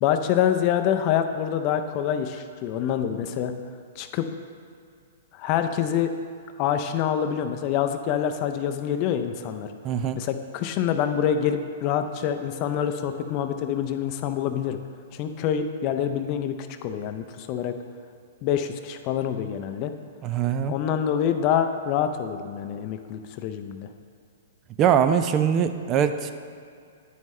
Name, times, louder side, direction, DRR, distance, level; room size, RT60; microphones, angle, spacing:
voice 1, 0.0-3.5 4.0-4.3 5.3-6.1 6.6-9.7 10.1-14.8 15.1-17.7 18.4-19.9 20.7-23.9, left 9 dB, 40° left, 7 dB, 0.5 m, -26 dB
voice 2, 9.8-10.2 20.2-20.7 24.8-26.3, right 8 dB, 30° right, 9 dB, 0.3 m, -22 dB
9.3 x 5.4 x 3.2 m, 2.3 s
hypercardioid pair, 135°, 0 cm